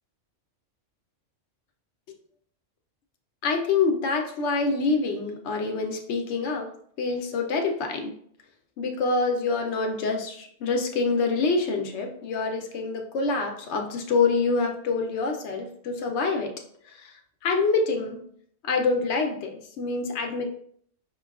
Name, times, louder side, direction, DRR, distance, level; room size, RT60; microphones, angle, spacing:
voice 1, 3.4-6.7 7.0-8.1 8.8-16.5 16.9-17.1 17.4-18.2 18.6-20.5, left 4 dB, 65° left, 3 dB, 0.9 m, -26 dB
5.6 x 2.3 x 2.3 m, 0.63 s
omnidirectional pair, 1.3 m